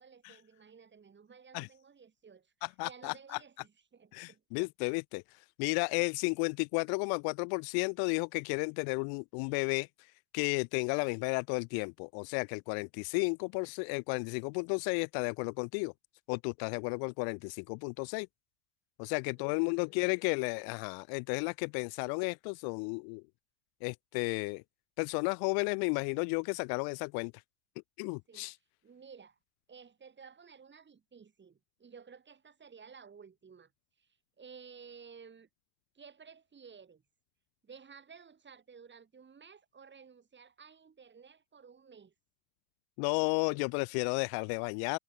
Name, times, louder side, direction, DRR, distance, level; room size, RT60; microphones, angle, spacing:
voice 1, 0.0-2.5 2.8-4.4 19.1-19.9 28.3-28.5 28.8-29.4 29.7-33.7 34.0-35.5 35.9-37.0 37.6-42.1, right 6 dB, 20° right, 4.2 m, -55 dB
voice 2, 2.6-3.4 4.1-9.9 10.3-15.9 16.3-18.3 19.0-23.2 23.8-24.6 25.0-27.3 28.0-28.5 43.0-45.0, left 37 dB, 55° left, 0.5 m, -33 dB
supercardioid pair, 110°, 49 cm